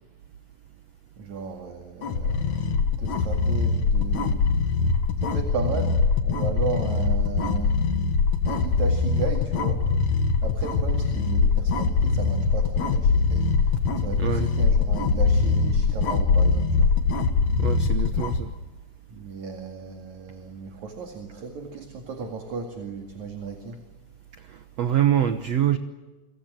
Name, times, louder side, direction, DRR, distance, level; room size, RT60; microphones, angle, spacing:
voice 1, 1.2-4.4 5.2-7.7 8.5-9.9 10.4-16.9 19.1-23.8, right 5 dB, 50° right, 4 dB, 3.2 m, -35 dB
sound 1, 2.0-18.4, left 4 dB, 50° left, 2.8 m, -22 dB
voice 2, 17.6-18.5 24.5-25.8, right 10 dB, 85° right, 9 dB, 1.4 m, -24 dB
28.0 x 25.5 x 7.6 m, 1.2 s
omnidirectional pair, 4.8 m